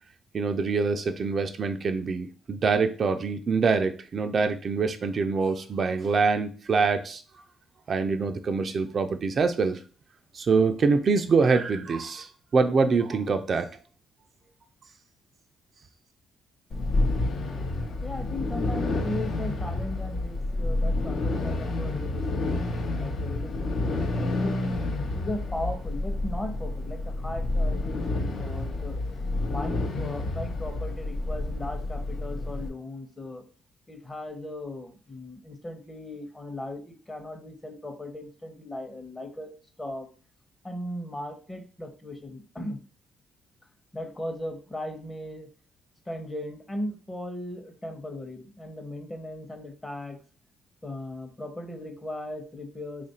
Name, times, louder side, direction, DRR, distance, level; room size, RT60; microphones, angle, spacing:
voice 1, 0.3-7.2 7.9-9.8 10.3-13.7, right 4 dB, 50° right, 7 dB, 0.4 m, -25 dB
sound 1, 16.7-32.7, left 2 dB, 65° left, 0.7 m, -29 dB
voice 2, 18.0-24.6 25.1-29.0 29.4-33.4 33.9-39.5 39.8-40.1 40.6-42.8 43.9-45.5 46.1-50.2 50.8-53.1, left 1 dB, 20° left, 6 dB, 0.8 m, -37 dB
3.0 x 2.4 x 4.2 m, 0.39 s
supercardioid pair, 70°, 0 cm